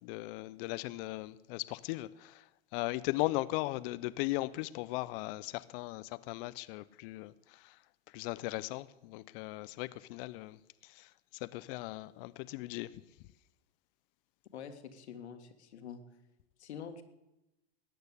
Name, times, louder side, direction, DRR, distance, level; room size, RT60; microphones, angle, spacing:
voice 1, 0.0-2.5 2.7-7.8 8.1-13.0, left 20 dB, 60° left, 0.7 m, -38 dB
voice 2, 14.5-16.0 16.6-17.0, left 7 dB, 85° left, 1.8 m, -46 dB
13.5 x 9.6 x 8.2 m
hypercardioid pair, 105°, 32 cm